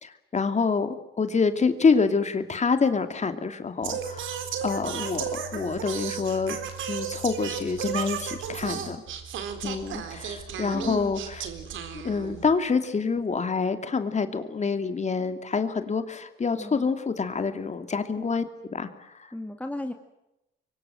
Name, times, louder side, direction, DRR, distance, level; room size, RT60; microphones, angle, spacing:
voice 1, 0.0-6.6 6.9-9.0 9.6-11.5 12.0-18.5 18.7-19.3, left 5 dB, 35° left, 8 dB, 2.6 m, -27 dB
Singing, 3.8-12.5, right 7 dB, 80° right, 3.9 m, -34 dB
voice 2, 10.7-11.1 16.6-16.9 18.2-18.3 19.3-19.9, left 1 dB, 5° left, 5 dB, 2.2 m, -35 dB
26.5 x 24.0 x 7.8 m, 0.90 s
cardioid pair, 90°, 20 cm